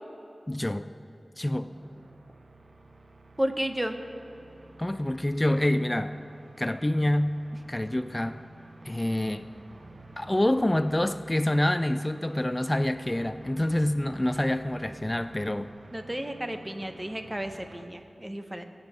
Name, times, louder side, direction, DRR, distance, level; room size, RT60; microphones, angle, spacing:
voice 1, 0.5-0.9 1.4-1.7 4.8-6.2 6.6-7.4 7.7-8.4 8.8-9.4 10.2-15.7, left 1 dB, 20° left, 10 dB, 0.3 m, -27 dB
sound 1, 1.4-17.9, right 2 dB, 60° right, 0.9 m, -51 dB
voice 2, 3.4-4.0 15.9-18.6, equal, 15° right, 7 dB, 0.9 m, -32 dB
22.0 x 8.1 x 4.3 m, 2.8 s
wide cardioid pair, 75°, 0 cm